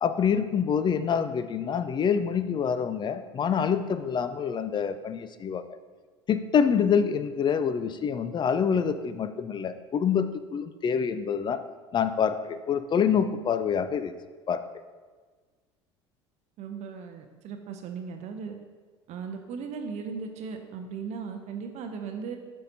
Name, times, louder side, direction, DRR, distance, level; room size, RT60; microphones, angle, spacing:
voice 1, 0.0-5.6 6.3-10.3 10.5-11.6 11.9-14.1 14.5-14.6, left 7 dB, 30° left, 11 dB, 0.4 m, -26 dB
voice 2, 16.6-18.5 19.1-22.4, right 5 dB, 50° right, 5 dB, 0.6 m, -37 dB
9.1 x 5.6 x 2.7 m, 1.4 s
hypercardioid pair, 65°, 15 cm